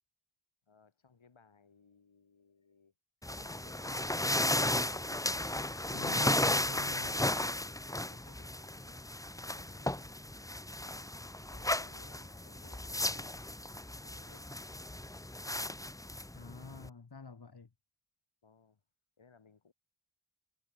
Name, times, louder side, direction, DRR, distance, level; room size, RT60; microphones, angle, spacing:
voice 1, 0.7-2.9 3.3-4.2 7.8-9.2 9.6-10.1 11.5-13.4 14.0-14.5 18.4-18.8 19.2-19.7, left 5 dB, 65° left, 4.7 m, -63 dB
sound 1, 3.2-16.9, left 1 dB, 5° left, 0.7 m, -35 dB
voice 2, 5.9-7.2 16.3-17.7, left 4 dB, 50° left, 2.9 m, -47 dB
cardioid pair, 50°, 50 cm